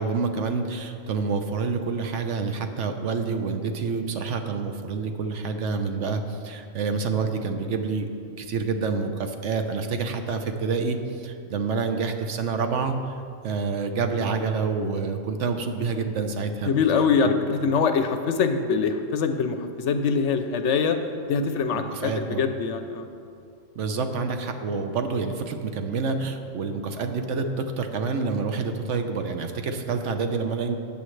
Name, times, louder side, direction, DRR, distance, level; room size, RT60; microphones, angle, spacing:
voice 1, 0.0-17.4 21.9-22.4 23.8-30.8, right 4 dB, 65° right, 6 dB, 1.0 m, -28 dB
voice 2, 16.7-21.0 21.3-23.1, left 5 dB, 65° left, 8 dB, 0.9 m, -24 dB
14.0 x 8.7 x 3.2 m, 2.4 s
omnidirectional pair, 1.4 m